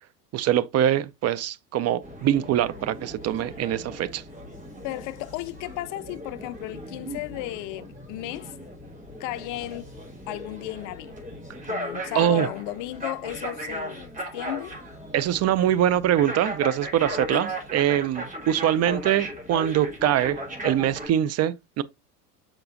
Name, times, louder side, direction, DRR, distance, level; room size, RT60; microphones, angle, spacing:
voice 1, 0.3-4.2 12.1-12.5 15.1-21.8, right 11 dB, 35° right, 0.5 m, -23 dB
sound 1, 2.0-21.1, equal, 15° right, 4.3 m, -37 dB
voice 2, 4.8-8.6 9.2-9.9 10.3-11.2 11.7-14.8 17.3-17.6, left 17 dB, 45° left, 0.4 m, -34 dB
6.6 x 5.9 x 2.6 m
hypercardioid pair, 75°, 49 cm